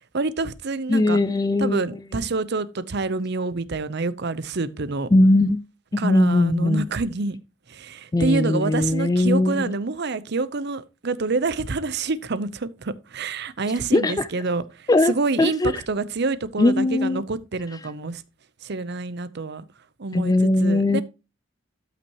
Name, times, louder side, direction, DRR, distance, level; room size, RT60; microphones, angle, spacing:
voice 1, 0.1-1.2 1.6-5.1 6.0-7.4 7.7-18.2 18.6-19.7 20.0-21.0, right 3 dB, 60° right, 0.7 m, -27 dB
voice 2, 0.9-1.8 5.1-5.6 5.9-6.9 8.1-9.6 13.9-14.3 14.9-15.1 15.4-15.7 16.6-17.2 20.1-21.0, left 2 dB, 20° left, 0.4 m, -19 dB
13.0 x 5.9 x 3.0 m
head